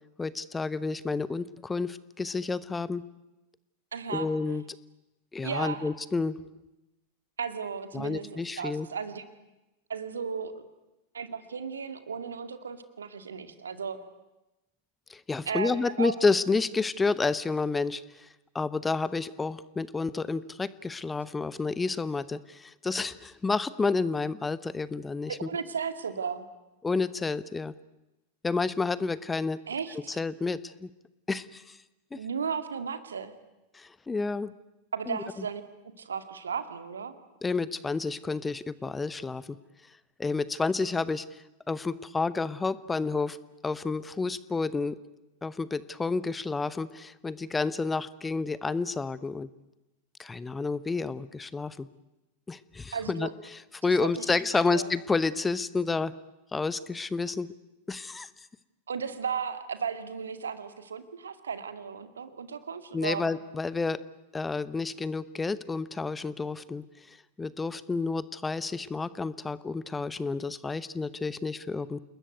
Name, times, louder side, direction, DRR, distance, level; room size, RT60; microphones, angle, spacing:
voice 1, 0.2-3.0 4.1-4.6 5.3-6.4 7.9-8.9 15.1-18.3 18.5-25.5 26.8-27.7 28.4-29.6 30.1-30.9 31.3-31.8 32.1-32.2 33.7-34.5 35.1-35.2 37.4-39.6 40.2-43.4 43.6-45.0 45.4-49.5 50.2-51.9 52.5-56.1 56.5-57.5 57.9-58.3 62.9-64.0 64.3-72.0, left 4 dB, 10° left, 18 dB, 0.9 m, -30 dB
voice 2, 3.9-4.3 5.4-5.9 7.4-9.2 9.9-10.6 11.1-14.0 15.5-16.1 25.3-26.4 29.7-30.2 32.1-33.3 34.9-35.6 36.0-37.1 52.9-53.3 53.8-54.9 58.9-63.3, right 6 dB, 70° right, 10 dB, 2.2 m, -35 dB
29.0 x 20.5 x 9.4 m, 0.98 s
figure-of-eight pair, 90°, 0 cm